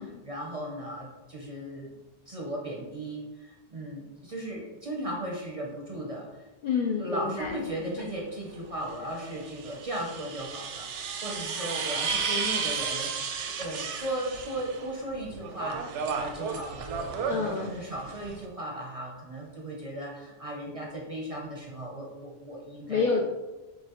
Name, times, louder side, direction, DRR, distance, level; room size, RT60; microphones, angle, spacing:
voice 1, 0.0-1.9 2.3-6.5 7.0-16.9 17.3-23.2, right 1 dB, 40° right, -1 dB, 0.5 m, -36 dB
voice 2, 6.6-7.6 17.2-17.7 22.9-23.2, left 5 dB, 60° left, 0 dB, 0.5 m, -28 dB
sound 1, 7.4-7.5 8.9-14.9 15.2-18.4, right 5 dB, 85° right, 0.9 m, -33 dB
5.7 x 2.7 x 2.9 m, 1.1 s
omnidirectional pair, 1.2 m